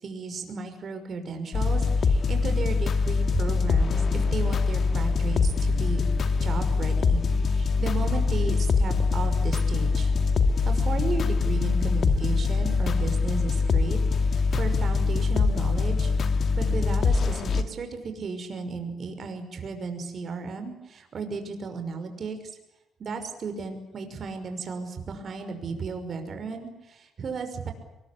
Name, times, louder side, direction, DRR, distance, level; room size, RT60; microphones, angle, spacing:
voice 1, 0.0-6.0 6.4-10.1 10.6-16.1 16.5-22.4 23.0-27.7, right 4 dB, 50° right, 6 dB, 5.8 m, -34 dB
sound 1, 1.5-17.6, left 4 dB, 55° left, 2.5 m, -23 dB
23.5 x 21.5 x 8.6 m, 1.0 s
cardioid pair, 90°, 0 cm